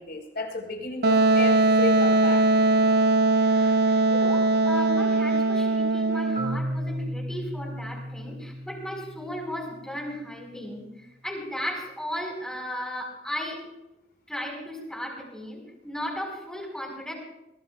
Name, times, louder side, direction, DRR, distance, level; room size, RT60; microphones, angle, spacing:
voice 1, 0.0-2.5, left 3 dB, 60° left, 2 dB, 4.3 m, -33 dB
Wind instrument woodwind instrument, 1.0-6.6, right 2 dB, 60° right, 0.4 m, -21 dB
voice 2, 3.3-10.9 11.2-13.6 14.3-17.1, equal, 5° left, -1 dB, 4.7 m, -35 dB
Marimba xylophone, 6.4-10.2, equal, 40° right, 1.9 m, -35 dB
22.5 x 17.5 x 2.3 m, 0.95 s
head